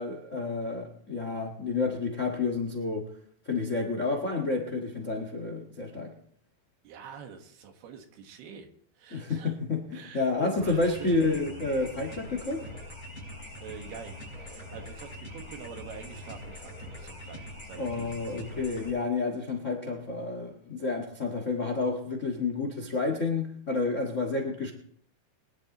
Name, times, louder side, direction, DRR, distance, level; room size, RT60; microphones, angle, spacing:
voice 1, 0.0-3.1 3.4-6.1 9.1-12.7 17.8-24.7, left 3 dB, 80° left, 4 dB, 0.6 m, -30 dB
voice 2, 6.8-8.7 9.0-9.5 9.9-11.2 13.6-18.3, right 7 dB, 75° right, 5 dB, 3.5 m, -45 dB
sound 1, 10.6-18.9, left 1 dB, 5° right, 7.0 m, -43 dB
23.0 x 11.5 x 3.0 m, 0.62 s
omnidirectional pair, 4.6 m